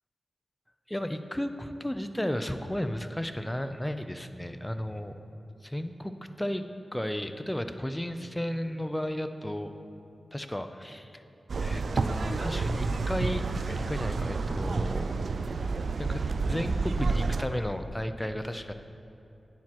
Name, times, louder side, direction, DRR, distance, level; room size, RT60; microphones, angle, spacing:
voice 1, 0.9-5.1 5.6-6.6 6.9-9.7 10.3-11.2 11.6-15.2 16.0-18.7, left 1 dB, 10° left, 9 dB, 0.5 m, -33 dB
sound 1, 11.5-17.5, right 4 dB, 70° right, 0.3 m, -30 dB
10.5 x 9.4 x 3.0 m, 2.8 s
cardioid pair, 55°, 0 cm